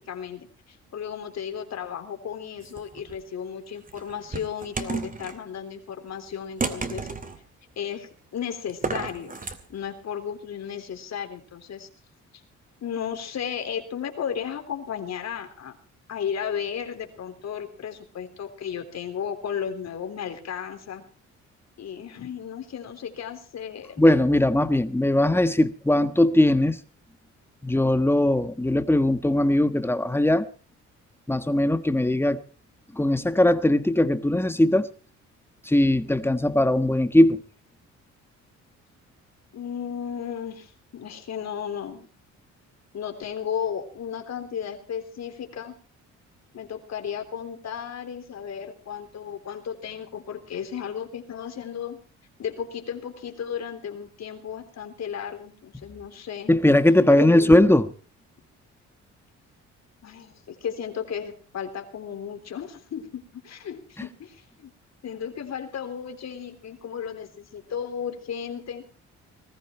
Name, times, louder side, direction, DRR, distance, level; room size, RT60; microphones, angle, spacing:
voice 1, 0.1-7.1 7.8-9.4 9.7-11.9 12.8-15.8 16.1-21.1 21.8-24.0 39.5-42.1 42.9-45.7 46.5-52.0 52.4-56.5 57.1-57.6 60.0-64.7 65.0-68.8, left 8 dB, 60° left, 3.6 m, -34 dB
sound 1, 2.6-3.2 3.9-5.4 6.6-7.4 8.7-9.6, right 4 dB, 25° right, 2.5 m, -31 dB
voice 2, 24.0-26.8 27.6-30.5 31.3-32.4 33.0-34.9 35.7-37.4 56.5-57.9, left 1 dB, 10° left, 1.3 m, -20 dB
20.0 x 14.5 x 4.5 m
cardioid pair, 90°, 30 cm